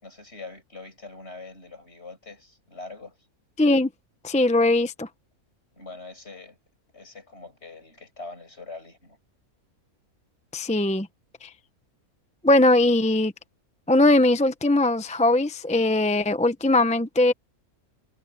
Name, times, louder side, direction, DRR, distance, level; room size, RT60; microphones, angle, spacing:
voice 1, 0.0-3.2 5.8-6.6 6.9-9.2, left 3 dB, 45° left, 5.9 m, -43 dB
voice 2, 3.6-3.9 4.2-5.1 10.5-11.1 11.4-11.5 12.4-13.3 13.9-17.3, left 2 dB, 5° left, 0.5 m, -20 dB
omnidirectional pair, 1.5 m